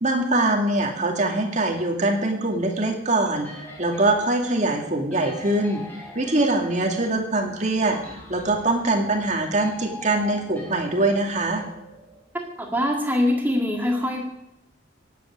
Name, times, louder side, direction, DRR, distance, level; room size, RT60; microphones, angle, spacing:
voice 1, 0.0-5.8 6.1-8.0 8.3-11.6, right 2 dB, 40° right, 2 dB, 2.3 m, -23 dB
sound 1, 3.3-12.8, left 1 dB, 10° left, 6.7 m, -44 dB
voice 2, 12.3-14.2, left 1 dB, 10° right, 1 dB, 1.9 m, -23 dB
16.0 x 8.4 x 9.8 m, 0.83 s
head